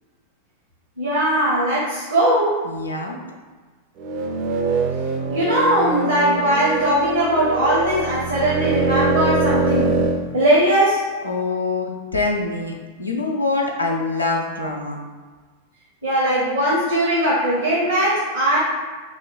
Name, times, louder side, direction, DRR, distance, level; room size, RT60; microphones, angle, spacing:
voice 1, 1.0-2.6 5.3-10.0 10.3-11.0 16.0-18.6, right 1 dB, 70° right, -5 dB, 0.8 m, -19 dB
voice 2, 2.6-3.2 11.2-15.0, left 3 dB, 80° left, 0 dB, 0.4 m, -24 dB
sound 1, 4.0-10.2, right 3 dB, 40° right, 0.4 m, -23 dB
3.0 x 2.1 x 3.9 m, 1.4 s
figure-of-eight pair, 90°, 0 cm